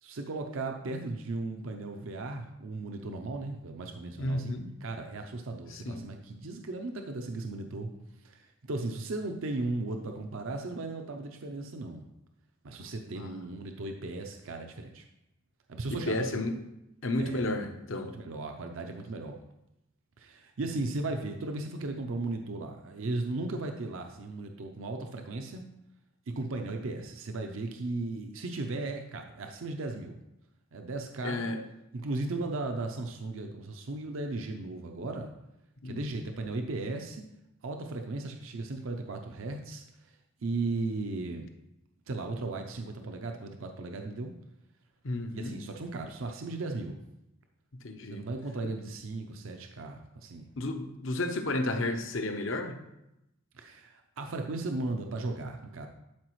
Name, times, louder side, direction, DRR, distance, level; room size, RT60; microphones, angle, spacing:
voice 1, 0.0-7.9 8.2-12.1 12.6-15.0 15.7-16.4 17.2-17.5 18.1-19.4 20.2-25.6 26.3-30.2 30.7-31.4 31.9-35.3 35.8-37.2 37.6-40.1 40.4-41.5 42.1-44.3 45.3-47.0 48.1-50.5 53.5-55.9, right 2 dB, 75° right, 4 dB, 0.6 m, -36 dB
voice 2, 4.2-4.7 5.7-6.0 12.8-13.3 15.9-16.5 17.0-18.1 28.0-28.1 31.2-31.6 35.8-36.0 45.0-45.6 47.8-48.3 50.6-52.7, left 2 dB, 70° left, 6 dB, 0.8 m, -32 dB
11.5 x 4.9 x 3.1 m, 0.89 s
head